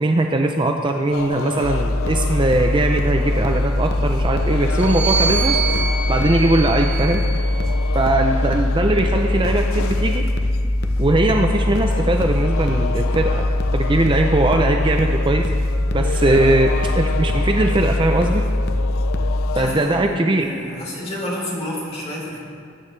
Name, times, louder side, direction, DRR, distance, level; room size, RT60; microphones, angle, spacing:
voice 1, 0.0-5.6 6.1-7.2 7.9-10.2 11.0-13.5 13.7-15.4 15.9-18.4 19.6-20.5, right 2 dB, 25° right, 3 dB, 0.5 m, -20 dB
sound 1, 1.1-20.0, left 6 dB, 75° left, 0.4 m, -32 dB
sound 2, 1.6-19.5, left 1 dB, 55° left, 0.8 m, -21 dB
sound 3, 4.7-8.3 9.1-10.7, right 5 dB, 55° right, 1.4 m, -28 dB
voice 2, 19.5-22.4, left 1 dB, 30° left, -4 dB, 3.4 m, -29 dB
20.0 x 9.3 x 3.3 m, 2.2 s
head